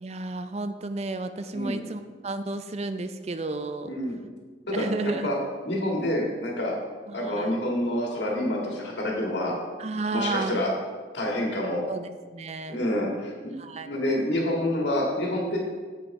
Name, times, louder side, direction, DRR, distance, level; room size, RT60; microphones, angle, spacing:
voice 1, 0.0-3.9 4.7-5.3 7.1-7.6 9.8-10.7 11.9-12.8 13.6-13.9, right 3 dB, 35° right, 10 dB, 0.5 m, -32 dB
voice 2, 3.9-4.2 4.7-4.8 5.2-5.4 5.6-6.7 7.1-9.6 10.1-10.7 11.1-11.8 12.7-13.5 13.8-15.6, left 1 dB, 75° left, -2 dB, 1.9 m, -27 dB
7.5 x 6.2 x 4.7 m, 1.5 s
head